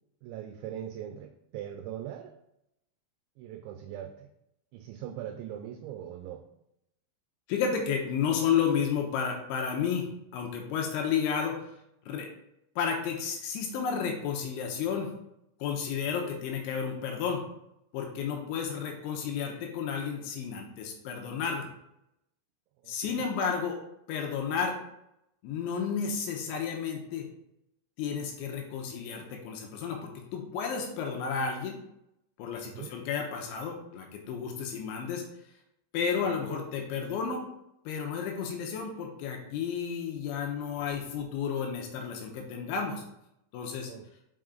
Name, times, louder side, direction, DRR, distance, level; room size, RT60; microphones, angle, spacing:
voice 1, 0.2-2.3 3.4-4.3 4.7-6.4 22.8-23.2 32.6-33.0 36.5-36.6 43.9-44.1, right 10 dB, 85° right, 6 dB, 2.7 m, -41 dB
voice 2, 7.5-10.1 10.3-11.6 12.1-12.3 12.8-15.1 15.6-17.4 17.9-21.7 22.9-23.8 24.1-24.8 25.4-27.3 28.0-31.7 32.4-35.2 35.9-37.5 37.9-43.0 43.5-43.9, left 6 dB, 80° left, 1 dB, 3.1 m, -32 dB
5.9 x 5.7 x 3.8 m, 0.82 s
omnidirectional pair, 5.6 m